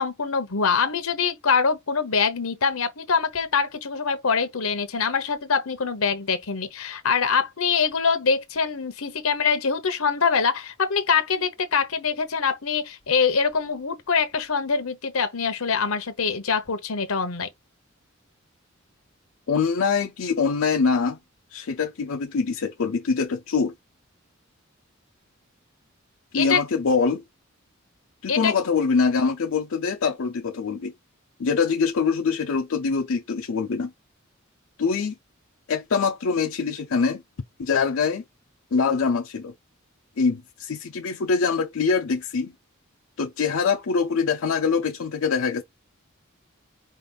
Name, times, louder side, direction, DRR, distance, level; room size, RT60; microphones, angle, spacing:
voice 1, 0.0-17.5 26.3-26.6 28.3-28.5, left 5 dB, 85° left, 1.0 m, -24 dB
voice 2, 19.5-21.2 21.5-23.7 26.3-27.2 28.2-30.9 31.4-33.9 34.8-35.2 35.7-37.2 37.6-38.2 38.7-39.5 40.2-42.5 43.2-45.6, left 5 dB, 70° left, 0.5 m, -24 dB
5.1 x 2.5 x 3.9 m
head